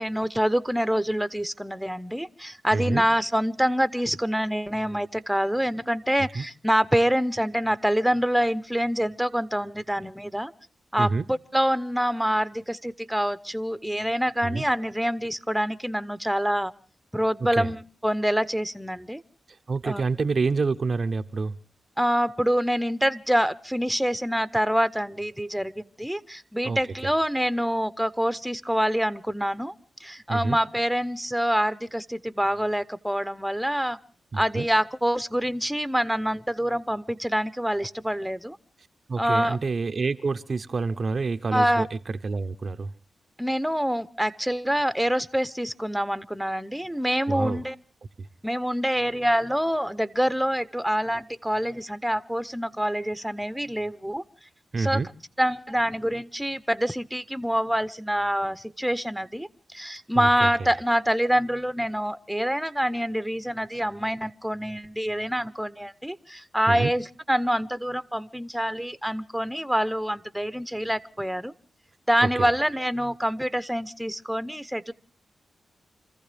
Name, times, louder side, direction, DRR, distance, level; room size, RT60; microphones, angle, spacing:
voice 1, 0.0-10.5 10.9-16.7 17.1-19.2 19.8-20.0 22.0-29.7 30.0-34.0 34.4-38.6 39.2-39.6 41.5-41.8 43.4-47.7 48.4-54.2 54.8-55.0 55.4-71.5 72.1-74.9, equal, 5° right, 0.8 m, -26 dB
voice 2, 2.7-3.1 6.3-6.5 11.0-11.3 14.4-14.7 17.4-17.7 19.7-21.6 26.6-27.1 30.3-30.6 34.3-34.7 39.1-42.9 47.3-47.6 54.7-55.1 60.1-60.7 66.7-66.9 72.2-72.5, right 4 dB, 55° right, 0.7 m, -28 dB
27.5 x 14.5 x 3.4 m
supercardioid pair, 45°, 0 cm